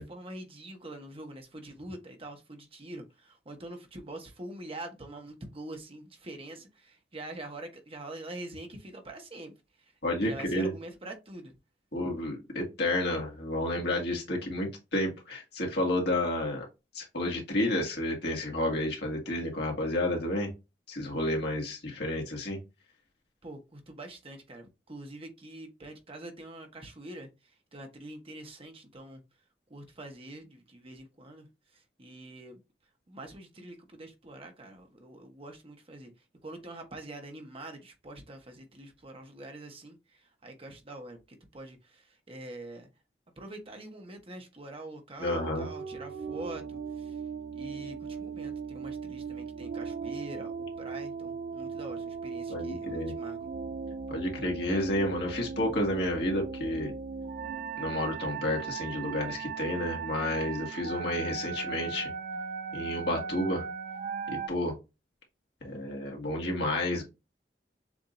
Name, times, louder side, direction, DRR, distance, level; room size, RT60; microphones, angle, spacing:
voice 1, 0.0-9.5 9.8-11.5 23.4-27.3 27.7-29.2 29.7-31.5 31.7-32.6 33.1-36.1 36.4-42.9 43.4-47.2 47.5-50.5 50.8-53.4, right 1 dB, 35° right, 1.1 m, -45 dB
voice 2, 10.0-10.7 11.9-16.7 16.9-20.5 20.9-22.6 45.2-45.7 52.5-53.1 54.1-56.9 57.8-62.1 62.7-63.7 64.3-64.8 65.6-67.0, left 1 dB, 65° left, 1.9 m, -31 dB
sound 1, 45.2-64.5, right 5 dB, 50° right, 0.3 m, -38 dB
7.0 x 2.7 x 2.5 m
head